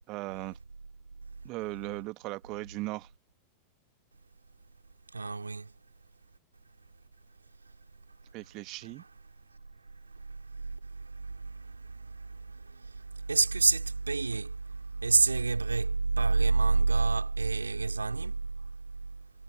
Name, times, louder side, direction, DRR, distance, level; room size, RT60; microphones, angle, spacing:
voice 1, 0.1-0.6 1.4-3.1 8.3-9.0, right 22 dB, 40° right, 1.6 m, -38 dB
voice 2, 5.1-5.8 7.6-7.8 8.1-8.2 8.8-9.1 9.8-18.7, right 4 dB, 80° right, 3.9 m, -29 dB
figure-of-eight pair, 90°, 0 cm